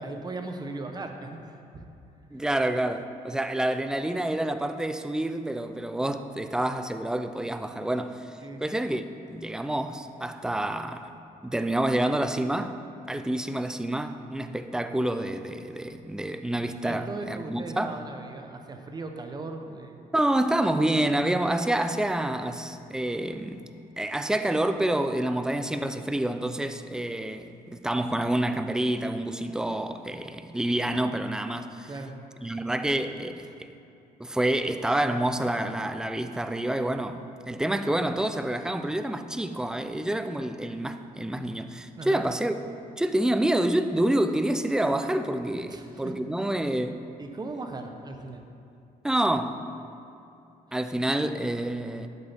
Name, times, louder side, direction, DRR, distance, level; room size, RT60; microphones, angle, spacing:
voice 1, 0.0-1.8 8.4-8.6 16.8-20.1 31.8-32.1 42.0-42.3 45.7-46.1 47.2-48.4, right 3 dB, 25° right, 0.9 m, -38 dB
voice 2, 2.3-9.0 9.3-11.1 11.4-12.8 13.1-18.0 20.1-23.7 24.0-31.9 32.4-33.5 34.2-42.6 43.0-47.0 49.0-49.6 50.7-52.1, right 1 dB, 5° right, 0.4 m, -28 dB
11.0 x 8.5 x 3.5 m
cardioid pair, 130°, 16 cm